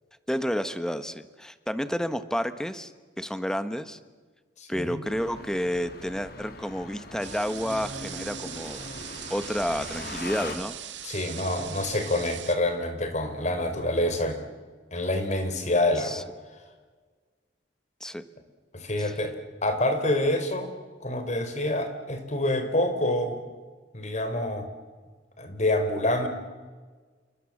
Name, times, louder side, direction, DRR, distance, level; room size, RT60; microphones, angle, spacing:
voice 1, 0.3-2.9 3.2-4.0 4.7-8.9 9.3-10.8 16.0-16.2 18.0-18.2 19.0-19.1, equal, 5° left, 11 dB, 1.3 m, -30 dB
voice 2, 4.6-5.0 11.0-14.4 14.9-16.2 18.7-19.3 19.6-20.7 21.0-23.4 23.9-24.7 25.4-26.3, left 1 dB, 40° left, 8 dB, 4.1 m, -27 dB
sound 1, 5.0-10.6, left 2 dB, 55° left, 2.8 m, -40 dB
sound 2, 7.2-12.6, right 11 dB, 80° right, 2.5 m, -41 dB
28.5 x 24.0 x 7.4 m, 1.4 s
head